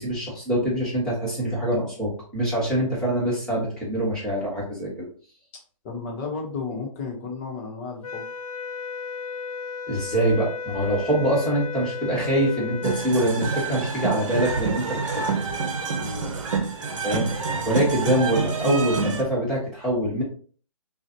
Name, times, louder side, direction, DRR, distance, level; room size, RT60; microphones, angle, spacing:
voice 1, 0.0-5.1 9.9-15.2 17.0-17.3 17.7-20.2, right 1 dB, 5° left, -7 dB, 1.4 m, -24 dB
voice 2, 5.8-8.3 15.9-16.4, left 4 dB, 25° left, 0 dB, 1.1 m, -33 dB
sound 1, 8.0-13.2, left 5 dB, 85° left, 0.4 m, -34 dB
sound 2, 12.8-19.2, right 4 dB, 60° right, 1.0 m, -28 dB
6.3 x 2.4 x 2.8 m, 0.43 s
hypercardioid pair, 155°, 18 cm